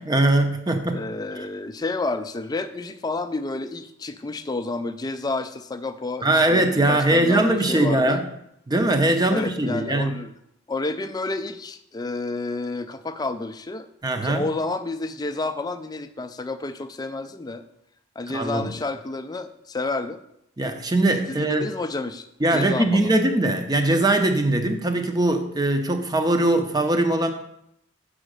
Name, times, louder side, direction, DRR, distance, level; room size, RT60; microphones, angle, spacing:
voice 1, 0.0-1.0 6.2-8.2 8.7-10.1 14.0-14.4 18.3-18.7 20.6-21.7 22.4-27.3, right 1 dB, 20° right, 7 dB, 0.6 m, -21 dB
voice 2, 0.9-8.2 9.3-10.3 10.7-13.9 14.2-17.6 18.2-20.2 21.3-23.1, left 2 dB, 20° left, 9 dB, 0.4 m, -30 dB
6.3 x 5.0 x 6.5 m, 0.78 s
head